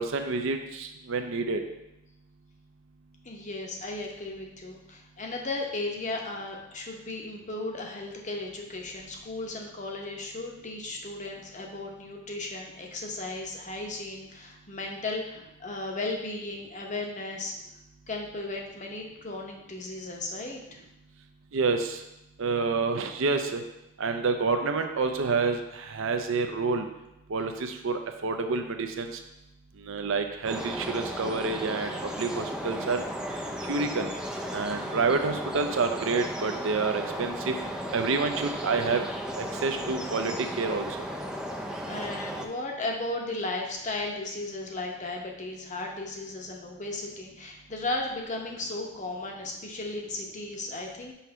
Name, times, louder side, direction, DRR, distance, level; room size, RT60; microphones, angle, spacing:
voice 1, 0.0-1.6 21.5-22.0 22.4-23.6 24.0-26.9 27.3-29.2 29.8-33.1 33.7-34.1 34.5-37.5 37.9-39.1 39.4-40.9, right 4 dB, 60° right, 6 dB, 0.6 m, -28 dB
voice 2, 3.2-17.6 18.1-20.8 41.8-51.1, left 2 dB, 35° left, 1 dB, 0.8 m, -35 dB
sound 1, 30.4-42.5, equal, 5° right, 0.4 m, -35 dB
5.6 x 3.1 x 5.6 m, 0.89 s
head